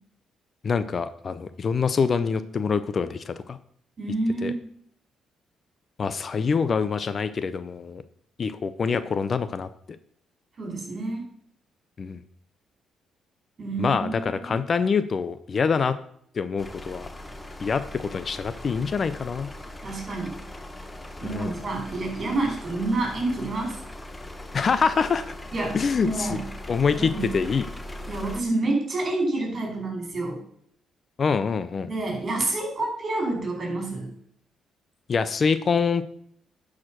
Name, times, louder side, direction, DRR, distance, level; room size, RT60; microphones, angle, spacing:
voice 1, 0.6-3.6 4.4-4.5 6.0-8.0 8.4-9.7 12.0-12.2 13.8-16.0 16.3-17.1 17.6-19.5 21.3-21.5 24.5-25.2 25.7-26.4 26.7-27.6 31.2-31.9 35.1-36.0, left 5 dB, 45° left, 13 dB, 0.6 m, -25 dB
voice 2, 4.0-4.6 10.6-11.2 13.6-14.6 19.8-20.3 21.2-23.8 25.5-25.8 26.0-26.5 26.9-27.3 28.1-30.4 31.9-34.1, right 2 dB, 40° right, 1 dB, 4.4 m, -28 dB
sound 1, 16.6-28.4, left 1 dB, 10° left, 1.0 m, -40 dB
11.0 x 4.9 x 6.0 m, 0.66 s
cardioid pair, 90°, 0 cm